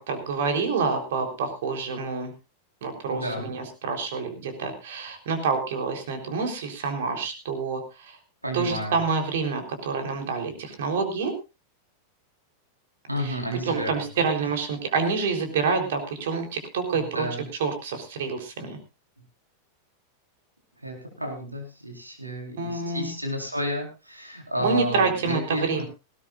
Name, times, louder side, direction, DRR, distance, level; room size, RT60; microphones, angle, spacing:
voice 1, 0.0-2.3 2.8-8.2 8.5-11.3 13.2-13.4 13.7-17.3 17.6-18.8 22.6-23.1 24.6-25.8, right 4 dB, 55° right, 4 dB, 3.8 m, -27 dB
voice 2, 3.1-3.5 8.4-9.0 13.1-14.3 16.9-17.5 20.8-25.8, equal, 85° right, 2 dB, 4.4 m, -32 dB
19.5 x 16.5 x 2.5 m, 0.28 s
figure-of-eight pair, 90°, 0 cm